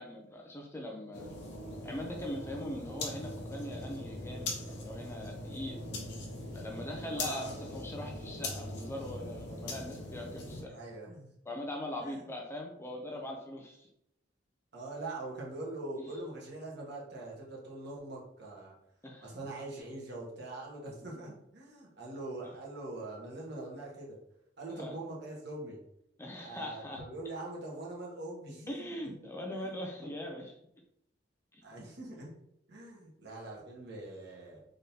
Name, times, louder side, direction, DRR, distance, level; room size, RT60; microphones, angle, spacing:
voice 1, 0.0-1.3 1.8-5.8 6.5-10.8 11.5-13.9 16.0-16.1 19.0-19.3 24.7-24.9 26.2-27.0 28.7-30.5 31.5-31.6, left 1 dB, 15° left, 1 dB, 0.5 m, -41 dB
sound 1, 1.1-10.6, left 2 dB, 65° left, 0.9 m, -41 dB
voice 2, 7.1-7.6 10.7-11.3 12.0-12.2 14.7-18.7 19.2-24.2 24.6-25.8 26.4-29.1 29.5-29.8 31.6-32.3 32.7-34.6, right 2 dB, 60° right, -3 dB, 1.4 m, -43 dB
3.8 x 3.5 x 2.8 m, 0.78 s
head